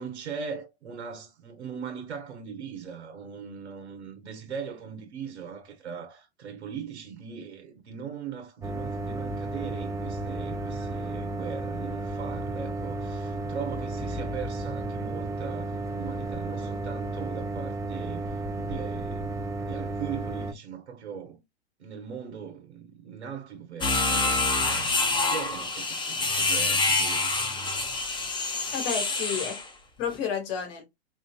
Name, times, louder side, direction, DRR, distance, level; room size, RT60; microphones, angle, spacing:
voice 1, 0.0-21.4 21.8-27.3 29.3-29.5, right 7 dB, 85° right, 1.1 m, -40 dB
sound 1, 8.6-20.5, right 2 dB, 10° right, 0.5 m, -33 dB
sound 2, 23.8-29.7, left 3 dB, 15° left, 0.8 m, -26 dB
voice 2, 28.7-29.6 30.0-30.8, left 7 dB, 60° left, 1.7 m, -31 dB
4.3 x 2.6 x 2.2 m
hypercardioid pair, 110°, 32 cm